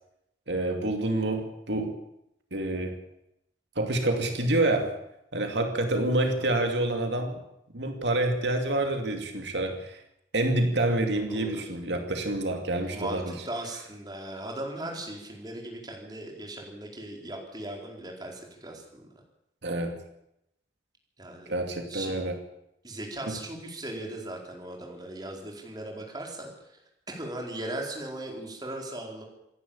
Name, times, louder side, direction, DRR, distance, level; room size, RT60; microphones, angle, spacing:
voice 1, 0.5-2.0 2.5-3.0 3.8-5.0 5.3-7.4 7.7-10.0 10.3-13.2 19.6-20.0 21.5-22.3 23.3-23.4, right 1 dB, 80° right, 4 dB, 2.6 m, -27 dB
voice 2, 6.2-6.6 11.3-11.6 12.9-19.0 21.2-21.5 21.9-22.1 22.8-26.8 27.1-29.2, right 1 dB, 25° right, 0 dB, 4.3 m, -38 dB
27.0 x 11.0 x 8.8 m, 0.82 s
head